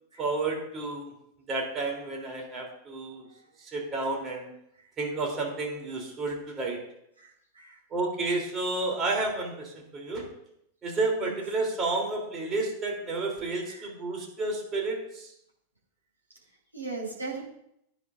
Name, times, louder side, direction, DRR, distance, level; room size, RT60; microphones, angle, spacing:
voice 1, 0.2-1.1 1.5-3.2 3.6-4.5 5.0-6.8 7.9-10.3 10.8-15.3, right 3 dB, 25° right, 0 dB, 3.3 m, -31 dB
voice 2, 7.2-7.8 11.2-11.3 13.6-13.9 16.7-17.4, right 3 dB, 85° right, -5 dB, 4.5 m, -38 dB
17.5 x 10.0 x 2.6 m, 0.76 s
figure-of-eight pair, 90°, 0 cm